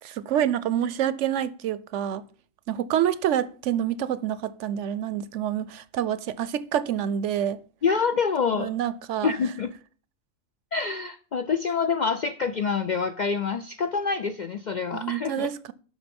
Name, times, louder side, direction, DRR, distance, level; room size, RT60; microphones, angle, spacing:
voice 1, 0.0-2.2 2.7-7.6 8.6-9.3 14.9-15.7, right 10 dB, 70° right, 0.9 m, -27 dB
voice 2, 7.8-8.7 9.2-9.7 10.7-15.5, left 5 dB, 80° left, 0.4 m, -26 dB
11.0 x 6.1 x 5.3 m
omnidirectional pair, 1.4 m